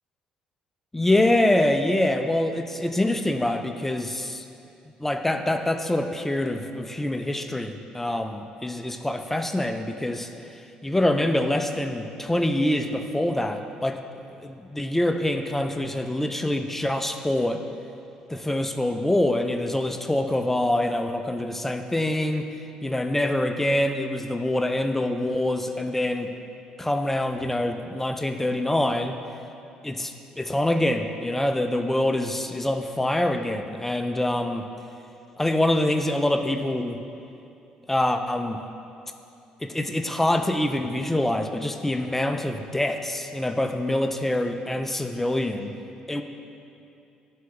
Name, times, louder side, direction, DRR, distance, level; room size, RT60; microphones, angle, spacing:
voice 1, 0.9-4.4 5.0-10.3 10.8-14.0 14.4-17.6 18.3-22.5 22.8-26.3 26.8-29.2 29.8-34.7 35.4-37.0 37.9-38.6 39.6-45.7 46.1-46.2, left 1 dB, 10° left, 6 dB, 0.5 m, -25 dB
11.0 x 4.7 x 3.2 m, 2.7 s
supercardioid pair, 80°, 3 cm